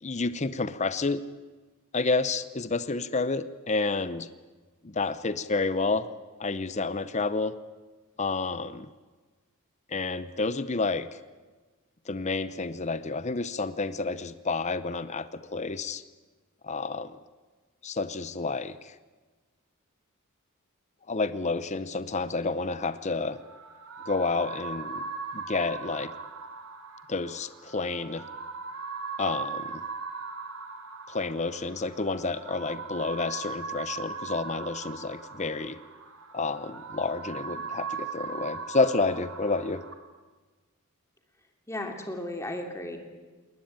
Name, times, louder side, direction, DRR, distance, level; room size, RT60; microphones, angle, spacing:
voice 1, 0.0-1.2 1.9-4.3 4.8-6.1 6.4-7.6 8.2-8.9 9.9-11.1 12.1-16.0 16.6-17.2 17.8-18.9 21.1-23.4 24.1-25.1 25.3-26.1 27.1-28.3 29.2-29.8 31.1-35.8 36.3-39.8, left 3 dB, 30° left, 14 dB, 0.7 m, -30 dB
sound 1, 22.9-39.9, right 4 dB, 75° right, 3.3 m, -39 dB
voice 2, 41.7-43.0, left 1 dB, 15° left, 3 dB, 2.9 m, -35 dB
21.0 x 19.5 x 8.9 m, 1.3 s
head